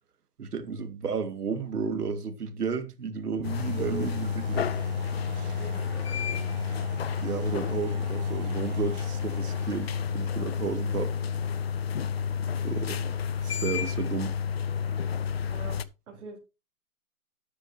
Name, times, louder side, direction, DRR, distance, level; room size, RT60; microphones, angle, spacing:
voice 1, 0.4-4.7 5.4-5.6 7.2-11.1 12.6-13.0 13.4-14.3, right 5 dB, 90° right, 2.2 m, -32 dB
sound 1, 3.4-15.8, left 7 dB, 45° left, 0.7 m, -30 dB
sound 2, 3.4-13.1, right 7 dB, 30° right, 1.5 m, -44 dB
voice 2, 3.7-4.1 5.6-6.5 15.5-16.4, right 4 dB, 60° right, 4.4 m, -42 dB
12.5 x 10.0 x 2.9 m
hypercardioid pair, 170°, 45 cm